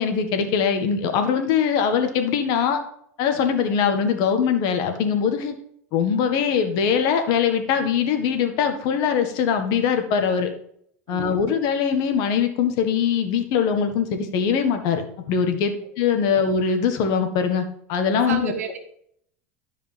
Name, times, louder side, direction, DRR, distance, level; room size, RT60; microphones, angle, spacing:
voice 1, 0.0-2.8 3.2-5.5 5.9-10.5 11.1-15.0 15.3-18.5, left 7 dB, 60° left, 6 dB, 1.6 m, -22 dB
voice 2, 18.3-18.9, right 6 dB, 90° right, 6 dB, 1.5 m, -31 dB
13.0 x 5.0 x 3.5 m, 0.68 s
hypercardioid pair, 95°, 8 cm